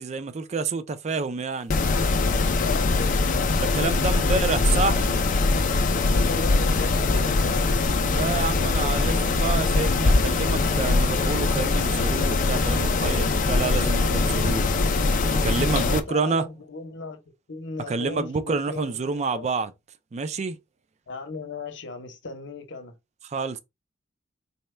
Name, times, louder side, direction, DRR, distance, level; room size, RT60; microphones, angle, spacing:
voice 1, 0.0-1.7 3.6-5.1 8.1-14.6 15.3-16.5 17.9-19.7 20.1-20.6 23.2-23.6, right 4 dB, 35° right, 0.4 m, -28 dB
Mechanisms, 1.7-16.0, left 3 dB, 45° left, 0.4 m, -22 dB
voice 2, 2.6-7.8 15.7-17.2 17.5-19.5 21.1-22.9, left 3 dB, 65° left, 0.8 m, -37 dB
4.1 x 2.2 x 3.2 m
head